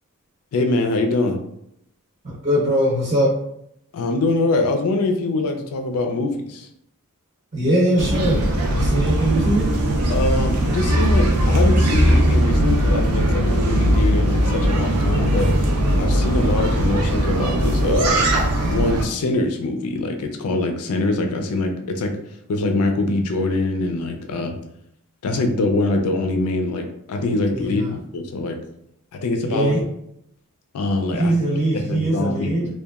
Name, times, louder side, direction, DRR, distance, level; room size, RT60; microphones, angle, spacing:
voice 1, 0.5-1.4 3.9-6.7 10.1-15.5 16.0-18.2 18.7-22.1 22.5-24.6 25.2-28.6 29.1-29.7 30.7-31.3 31.7-32.7, left 2 dB, 75° left, 4 dB, 0.4 m, -23 dB
voice 2, 2.2-3.3 7.5-9.7 27.5-27.9 29.4-29.8 31.1-32.6, right 1 dB, 35° right, -6 dB, 0.6 m, -21 dB
sound 1, 8.0-19.0, right 1 dB, 75° right, 0.5 m, -19 dB
2.8 x 2.2 x 2.3 m, 0.75 s
head